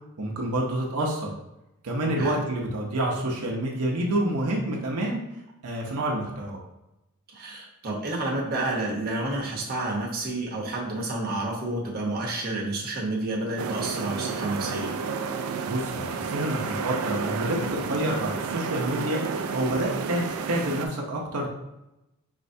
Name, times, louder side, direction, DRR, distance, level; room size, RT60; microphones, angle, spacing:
voice 1, 0.2-1.3 1.8-5.2 5.6-6.6 15.6-19.2 19.5-21.5, right 1 dB, 85° right, -1 dB, 0.8 m, -28 dB
voice 2, 7.3-14.9, right 2 dB, 45° right, -2 dB, 0.9 m, -30 dB
sound 1, 13.6-20.9, right 5 dB, 65° right, 0.4 m, -31 dB
5.3 x 3.2 x 2.7 m, 0.92 s
head